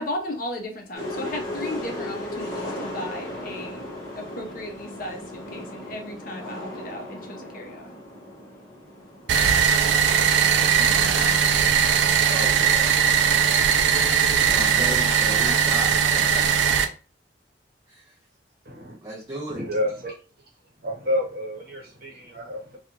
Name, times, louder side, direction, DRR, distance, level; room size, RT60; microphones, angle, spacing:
voice 1, 0.0-3.8 4.2-8.0 10.8-11.4, left 1 dB, 50° left, 0.6 m, -35 dB
sound 1, 0.9-15.4, left 1 dB, 20° left, 1.0 m, -38 dB
sound 2, 9.3-16.8, right 7 dB, 85° right, 0.4 m, -20 dB
voice 2, 12.2-13.0 14.4-16.8 17.9-18.2 19.0-19.6, right 1 dB, 20° right, 0.4 m, -36 dB
voice 3, 18.6-19.0 19.5-20.1 20.8-22.8, left 1 dB, 55° right, 1.0 m, -29 dB
2.4 x 2.2 x 3.0 m
head